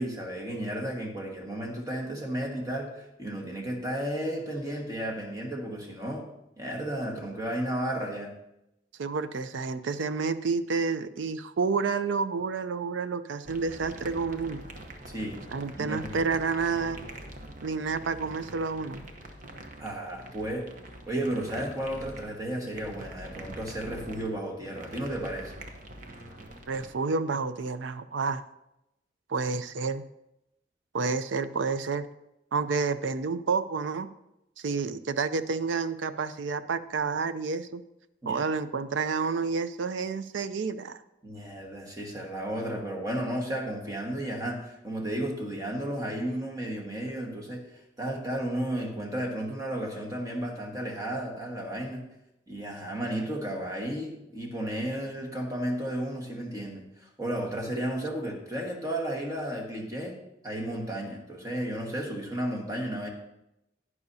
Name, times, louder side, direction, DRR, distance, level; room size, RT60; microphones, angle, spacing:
voice 1, 0.0-6.3 6.6-8.3 15.1-15.4 15.8-16.1 19.8-20.7 21.1-25.5 38.2-38.4 41.2-52.0 52.5-60.1 60.4-63.1, right 1 dB, 20° right, 0 dB, 1.5 m, -33 dB
voice 2, 9.0-14.6 15.5-17.0 17.6-19.0 26.7-28.4 29.3-30.1 30.9-32.1 32.5-34.1 34.6-37.8 38.3-41.0, right 4 dB, 80° right, 13 dB, 0.5 m, -29 dB
sound 1, 13.4-26.9, right 1 dB, 45° right, 0.9 m, -45 dB
11.5 x 9.7 x 2.7 m, 0.87 s
head